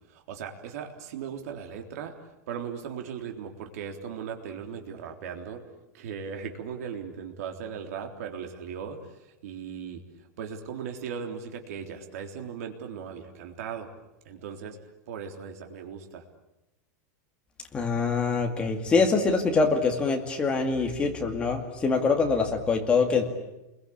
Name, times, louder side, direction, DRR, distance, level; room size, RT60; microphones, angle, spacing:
voice 1, 0.1-2.1 2.5-5.6 5.9-10.0 10.4-13.9 14.2-14.8 15.1-16.2, right 7 dB, 55° right, 4 dB, 3.6 m, -38 dB
voice 2, 17.7-23.3, left 4 dB, 10° left, 3 dB, 2.2 m, -24 dB
29.0 x 22.5 x 8.6 m, 0.95 s
supercardioid pair, 180°, 9 cm